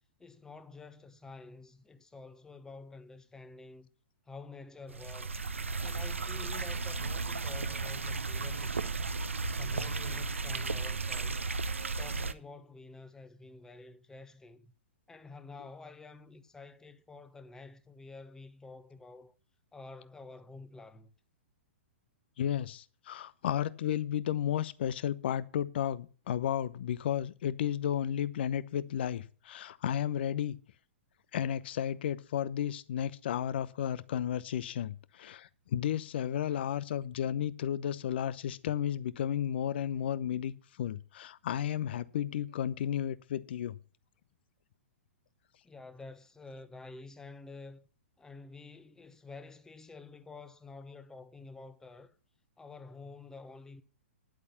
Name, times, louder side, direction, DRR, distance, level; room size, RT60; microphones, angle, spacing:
voice 1, 0.2-3.9 4.3-5.4 5.8-9.1 9.5-11.5 12.0-14.7 15.1-19.3 19.7-21.1 45.6-47.9 48.2-52.1 52.6-53.8, left 3 dB, 10° left, 1.0 m, -49 dB
sound 1, 4.9-12.3, right 3 dB, 80° right, 0.8 m, -34 dB
voice 2, 22.4-30.6 31.3-43.8, left 10 dB, 55° left, 0.8 m, -33 dB
10.5 x 8.3 x 5.7 m
figure-of-eight pair, 110°, 7 cm